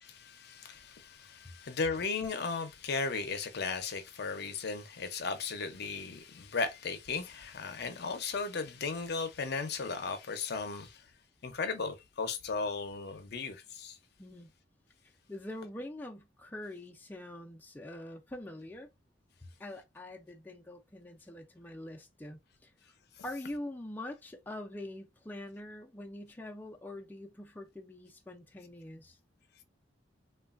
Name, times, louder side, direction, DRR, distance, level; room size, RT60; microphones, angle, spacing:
voice 1, 0.0-11.0 11.4-14.0, left 4 dB, 60° left, 0.6 m, -36 dB
voice 2, 14.2-14.5 15.3-18.9 19.6-22.7 23.2-29.2, left 1 dB, 10° left, 0.4 m, -44 dB
3.1 x 2.3 x 2.4 m
head